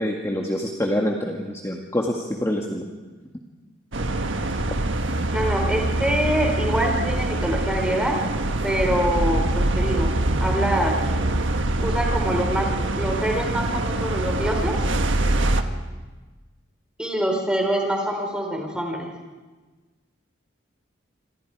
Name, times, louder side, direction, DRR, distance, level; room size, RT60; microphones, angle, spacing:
voice 1, 0.0-2.8, equal, 15° left, 0 dB, 1.9 m, -26 dB
sound 1, 3.9-15.6, right 2 dB, 75° right, 1.5 m, -24 dB
voice 2, 5.3-8.2 8.6-10.1 10.4-11.0 11.8-14.8 17.0-19.1, equal, 5° right, 1 dB, 4.4 m, -25 dB
27.5 x 26.5 x 4.8 m, 1.3 s
head